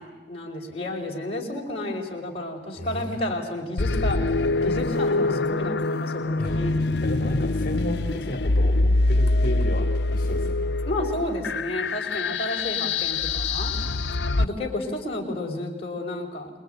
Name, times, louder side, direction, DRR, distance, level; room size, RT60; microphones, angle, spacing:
voice 1, 0.0-6.8 10.9-13.7 14.4-16.5, left 1 dB, 35° left, -1 dB, 4.8 m, -31 dB
voice 2, 2.7-3.3 6.4-6.7 7.0-10.7 13.8-14.2 14.5-14.6, equal, 50° left, 4 dB, 3.0 m, -33 dB
sound 1, 3.8-14.4, left 2 dB, 75° left, 0.8 m, -24 dB
26.5 x 21.5 x 9.2 m, 1.2 s
head